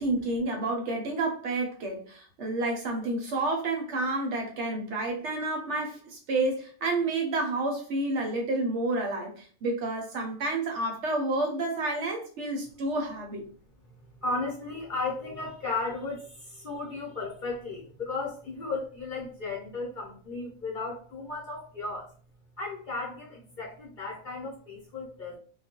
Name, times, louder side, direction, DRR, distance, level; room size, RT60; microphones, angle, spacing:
voice 1, 0.0-13.4, right 2 dB, 65° right, 2 dB, 0.9 m, -30 dB
voice 2, 14.2-16.2 16.6-22.0 22.6-25.4, left 3 dB, 45° left, -4 dB, 0.8 m, -35 dB
2.3 x 2.2 x 2.8 m, 0.42 s
omnidirectional pair, 1.4 m